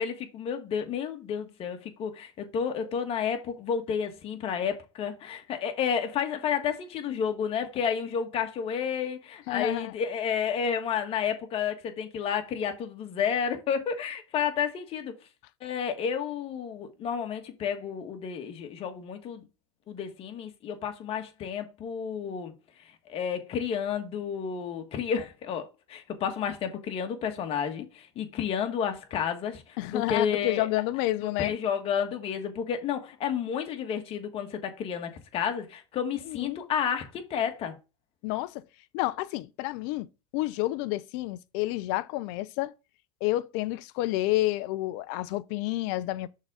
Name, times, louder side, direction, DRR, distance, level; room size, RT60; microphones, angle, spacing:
voice 1, 0.0-15.1 15.6-19.4 19.9-22.5 23.1-30.7 31.4-37.7, left 7 dB, 40° left, 1.5 m, -31 dB
voice 2, 9.5-9.9 29.8-31.5 36.3-36.6 38.2-38.6 38.9-42.7 43.2-46.3, left 17 dB, 60° left, 0.6 m, -29 dB
6.4 x 3.8 x 4.9 m
hypercardioid pair, 100°, 15 cm